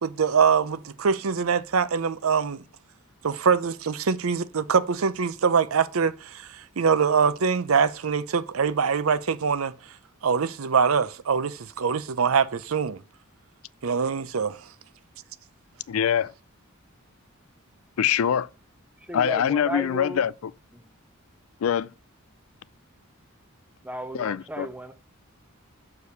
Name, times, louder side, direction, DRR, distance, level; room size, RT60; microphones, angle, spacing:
voice 1, 0.0-2.6 3.2-6.5 6.8-9.7 10.2-13.0 13.8-14.6, right 6 dB, 80° right, 0.6 m, -23 dB
voice 2, 15.9-16.3 18.0-18.5 19.1-20.5 21.6-21.9 24.1-24.7, left 8 dB, 75° left, 0.4 m, -24 dB
voice 3, 19.0-20.2 20.7-20.8 23.8-25.0, right 1 dB, 5° right, 0.6 m, -35 dB
6.8 x 4.8 x 6.9 m
head